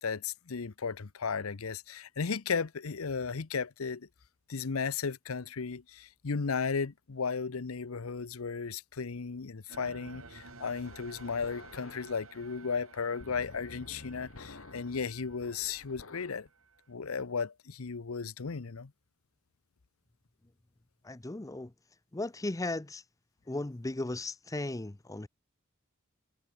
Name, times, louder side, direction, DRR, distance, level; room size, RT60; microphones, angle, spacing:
voice 1, 0.0-4.1 4.5-16.5 16.9-18.9, left 5 dB, 85° left, 0.8 m, -35 dB
sound 1, 9.7-16.5, left 3 dB, 70° left, 1.3 m, -52 dB
sound 2, 9.7-16.9, right 4 dB, 80° right, 2.3 m, -54 dB
voice 2, 21.0-21.7 22.1-23.0 23.5-25.3, left 2 dB, 15° left, 0.6 m, -36 dB
head